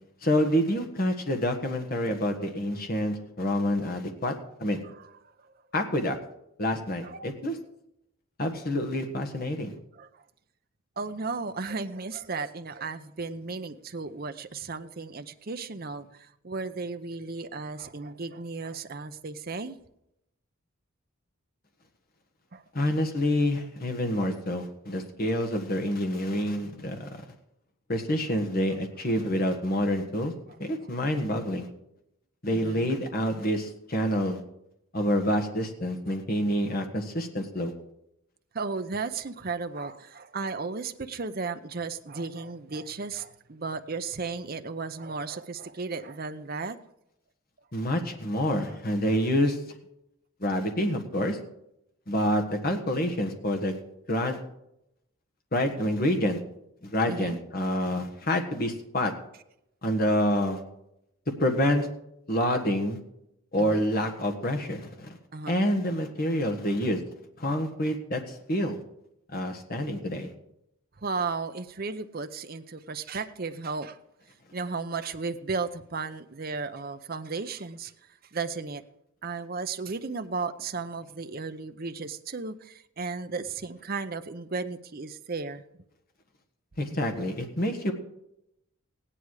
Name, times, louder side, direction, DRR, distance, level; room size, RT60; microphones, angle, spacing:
voice 1, 0.2-4.3 4.6-4.8 5.7-6.2 6.6-7.6 8.4-9.7 22.7-27.1 27.9-30.3 30.6-31.7 32.4-34.4 34.9-37.7 47.7-49.6 50.4-51.4 52.1-53.8 54.1-54.4 55.5-56.4 56.8-59.1 59.8-60.6 61.4-61.9 62.3-63.0 63.5-65.1 65.5-67.0 67.4-68.8 69.3-70.3 86.8-87.9, equal, 45° left, 4 dB, 1.5 m, -27 dB
voice 2, 11.0-19.8 22.5-22.6 32.5-33.0 38.5-46.8 48.7-48.8 57.1-57.4 63.6-63.8 65.3-65.6 71.0-74.0 74.5-77.9 78.3-78.8 79.2-85.6 86.9-87.2, right 4 dB, 45° right, 9 dB, 0.7 m, -35 dB
16.5 x 10.0 x 4.8 m, 0.82 s
head